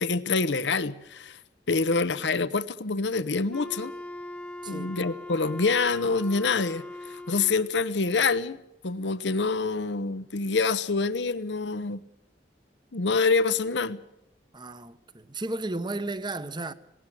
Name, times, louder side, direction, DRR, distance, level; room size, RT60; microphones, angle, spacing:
voice 1, 0.0-1.4 1.7-3.9 4.7-8.6 8.8-12.0 12.9-14.0, left 4 dB, 85° left, 0.9 m, -26 dB
Wind instrument woodwind instrument, 3.5-7.8, left 1 dB, 5° left, 0.8 m, -40 dB
voice 2, 4.6-4.9 14.5-16.7, right 2 dB, 25° right, 1.1 m, -34 dB
19.0 x 18.0 x 7.5 m
head